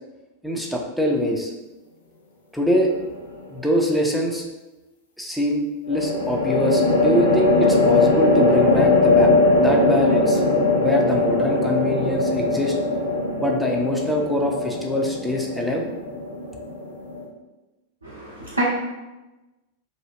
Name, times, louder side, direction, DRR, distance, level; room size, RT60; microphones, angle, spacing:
voice 1, 0.4-1.5 2.5-2.9 3.5-4.4 5.2-5.6 5.9-9.3 9.6-10.4 10.8-12.7 13.4-15.8, left 1 dB, ahead, -1 dB, 0.5 m, -24 dB
sound 1, 2.8-3.3 5.9-17.2, left 2 dB, 75° left, 0.5 m, -20 dB
voice 2, 18.0-18.6, right 1 dB, 80° right, -6 dB, 0.6 m, -27 dB
2.6 x 2.3 x 3.2 m, 1.1 s
figure-of-eight pair, 90°, 0 cm